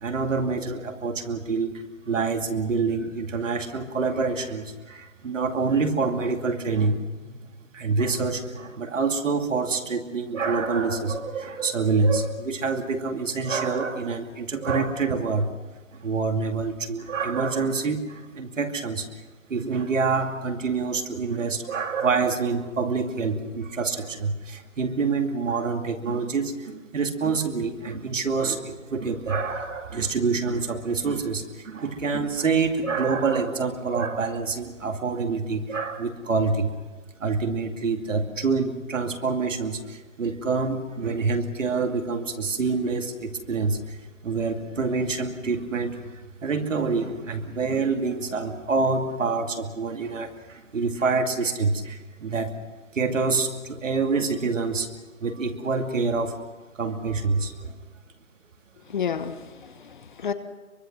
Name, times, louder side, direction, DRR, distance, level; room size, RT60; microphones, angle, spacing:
voice 1, 0.0-7.0 7.2-15.5 15.9-19.1 19.5-36.7 37.2-44.0 44.2-52.6 52.9-54.9 55.2-56.4 56.8-57.8, right 4 dB, 65° right, 5 dB, 2.6 m, -26 dB
voice 2, 58.9-60.3, left 7 dB, 35° left, 11 dB, 1.1 m, -31 dB
23.5 x 23.0 x 6.1 m, 1.3 s
hypercardioid pair, 160°, 41 cm